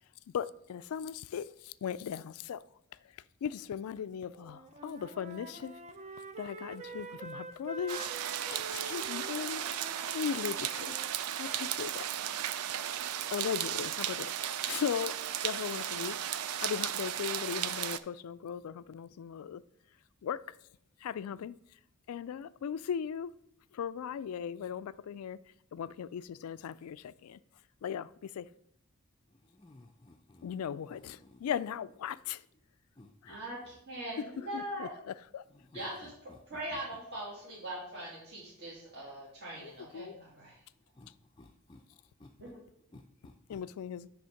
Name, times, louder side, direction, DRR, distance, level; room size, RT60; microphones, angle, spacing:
voice 1, 0.3-2.6 3.4-5.7 6.4-8.0 8.5-9.6 10.1-10.9 11.4-12.0 13.3-14.3 14.7-15.2 15.4-16.2 16.6-19.6 20.2-20.4 21.0-21.5 22.1-23.3 23.7-25.4 25.7-27.4 27.8-28.5 30.4-32.4 33.2-33.3 34.5-35.4 39.6-40.2 43.5-44.1, left 8 dB, 85° left, 0.3 m, -38 dB
Wind instrument woodwind instrument, 4.4-11.1, right 3 dB, 30° right, 0.5 m, -46 dB
sound 1, 7.9-18.0, right 10 dB, 80° right, 0.4 m, -35 dB
voice 2, 29.5-30.6 30.9-31.4 33.0-33.4 35.5-36.4 41.4-41.8 42.2-42.3 42.9-43.6, left 2 dB, 20° left, 0.4 m, -56 dB
voice 3, 33.3-34.9 35.7-36.1 36.5-40.6 42.4-42.6, right 1 dB, 50° right, 2.2 m, -41 dB
10.0 x 3.5 x 5.7 m
head